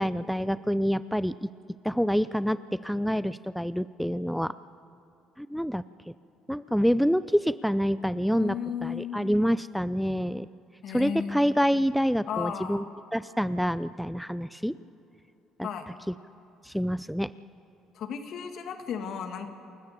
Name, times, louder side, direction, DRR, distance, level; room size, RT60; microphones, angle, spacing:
voice 1, 0.0-1.5 1.8-4.5 5.4-6.1 6.5-8.6 8.8-10.5 10.9-12.8 13.1-14.8 15.6-15.7 16.1-16.2 16.6-17.3, equal, ahead, 15 dB, 0.5 m, -27 dB
voice 2, 8.3-9.2 10.8-11.4 12.3-12.8 15.6-15.9 17.9-19.5, left 7 dB, 60° left, 6 dB, 2.2 m, -34 dB
28.5 x 14.0 x 6.9 m, 3.0 s
hypercardioid pair, 60°, 0 cm